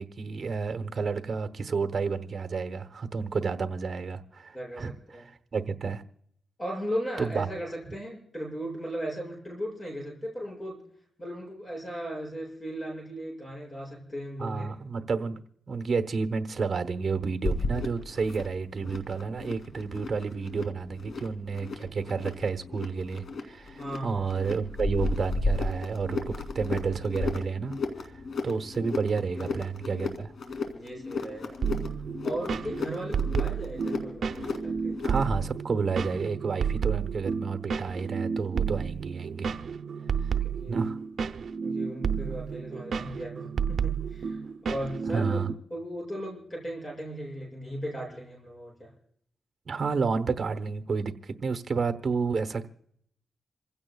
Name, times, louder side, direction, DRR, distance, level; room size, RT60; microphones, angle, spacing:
voice 1, 0.0-4.9 5.2-6.0 7.2-7.5 14.4-15.4 15.7-27.7 28.0-28.1 28.4-30.3 35.0-39.5 40.7-41.0 45.1-45.5 49.7-52.7, right 5 dB, 50° right, 1.0 m, -30 dB
voice 2, 4.5-5.3 6.6-10.8 11.2-14.7 23.8-24.4 29.3-29.6 30.7-31.6 32.2-35.0 40.0-40.1 40.4-40.8 41.6-45.4 45.7-48.9, equal, 30° left, 6.6 m, -37 dB
sound 1, 17.4-35.5, left 3 dB, 75° left, 2.7 m, -34 dB
sound 2, 31.6-45.5, right 6 dB, 70° right, 0.6 m, -31 dB
27.5 x 16.0 x 2.4 m
cardioid pair, 90°, 0 cm